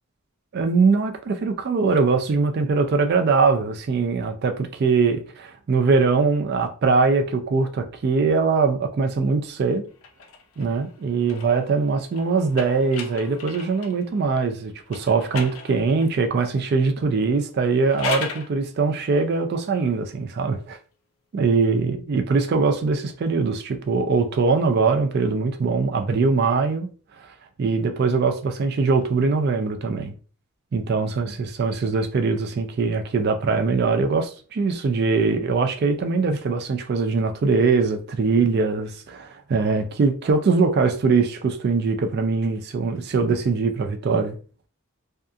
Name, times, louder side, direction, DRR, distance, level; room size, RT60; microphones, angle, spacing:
voice 1, 0.5-9.8 10.6-20.8 21.3-26.9 27.2-30.1 30.7-44.4, right 4 dB, 50° right, 0.3 m, -22 dB
sound 1, 10.0-14.0 14.9-16.2 17.7-18.5, left 5 dB, 70° left, 0.5 m, -36 dB
2.7 x 2.3 x 2.3 m
head